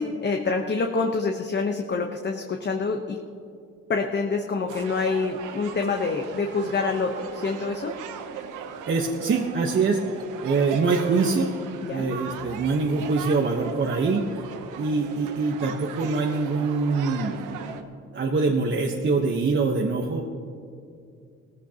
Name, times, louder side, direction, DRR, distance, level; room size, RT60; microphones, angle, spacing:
voice 1, 0.0-3.2 3.9-7.9 11.8-12.1, left 4 dB, 35° left, 3 dB, 1.0 m, -26 dB
sound 1, 4.7-17.8, right 7 dB, 90° right, 1.0 m, -38 dB
voice 2, 8.9-11.5 11.9-14.3 14.7-17.9 18.1-20.2, right 4 dB, 40° right, 1 dB, 1.1 m, -24 dB
18.0 x 15.0 x 2.9 m, 2.4 s
cardioid pair, 90°, 30 cm